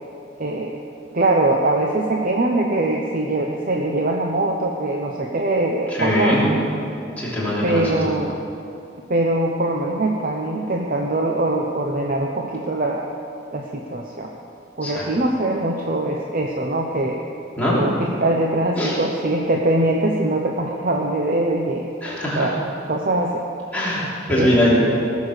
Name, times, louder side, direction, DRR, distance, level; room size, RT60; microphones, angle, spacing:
voice 1, 0.4-0.8 1.1-6.6 7.6-8.4 9.1-13.0 13.5-14.3 14.8-17.2 17.8-21.8 22.3-22.6 22.9-23.4 24.3-25.1, right 2 dB, 50° right, 1 dB, 0.8 m, -22 dB
voice 2, 5.9-6.4 7.1-8.1 14.8-15.0 17.6-17.8 18.8-18.9 22.0-22.5 23.7-24.7, left 1 dB, 10° left, -8 dB, 3.2 m, -21 dB
18.0 x 7.0 x 6.5 m, 2.7 s
head